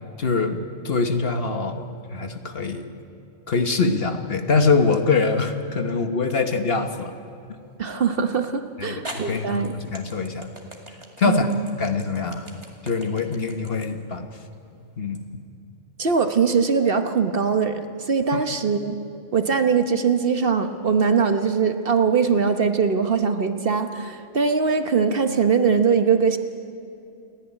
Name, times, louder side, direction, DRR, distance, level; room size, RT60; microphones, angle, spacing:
voice 1, 0.2-1.8 2.1-2.9 3.5-7.1 8.8-10.5 11.2-11.5 11.8-12.5 12.8-14.3 15.0-15.2 18.3-18.4, left 4 dB, 50° left, 6 dB, 1.4 m, -23 dB
sound 1, 4.9-5.5 6.3-6.4 8.3-8.4 9.0-15.2, right 1 dB, 25° right, 2.2 m, -41 dB
voice 2, 7.8-9.8 11.2-11.7 16.0-18.9 19.3-26.4, right 5 dB, 50° right, 7 dB, 1.1 m, -21 dB
29.0 x 10.5 x 9.9 m, 2.6 s
omnidirectional pair, 1.3 m